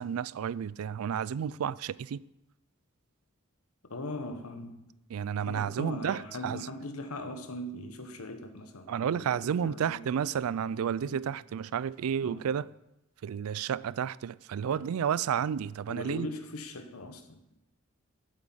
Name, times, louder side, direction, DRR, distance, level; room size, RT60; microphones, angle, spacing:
voice 1, 0.0-2.2 5.1-6.6 8.9-12.7 13.2-16.3, right 8 dB, 75° right, 0.3 m, -31 dB
voice 2, 3.8-4.9 5.5-10.2 11.0-11.4 12.2-12.5 14.7-14.9 15.9-17.6, left 1 dB, 85° left, 1.2 m, -40 dB
8.4 x 8.0 x 7.4 m
head